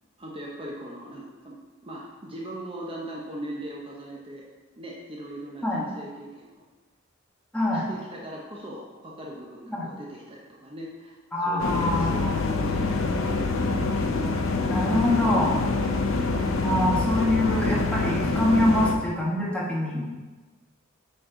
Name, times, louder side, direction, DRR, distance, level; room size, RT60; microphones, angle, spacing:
voice 1, 0.2-1.6 1.8-4.5 4.8-6.6 7.7-11.2 11.5-13.6 15.7-16.0, right 1 dB, 25° right, -3 dB, 0.9 m, -39 dB
voice 2, 7.5-7.9 9.7-9.9 11.3-12.4 14.7-15.5 16.6-20.2, left 1 dB, 5° left, -5 dB, 1.3 m, -25 dB
sound 1, 11.6-18.9, left 3 dB, 65° left, 0.7 m, -25 dB
9.1 x 4.3 x 3.8 m, 1.3 s
head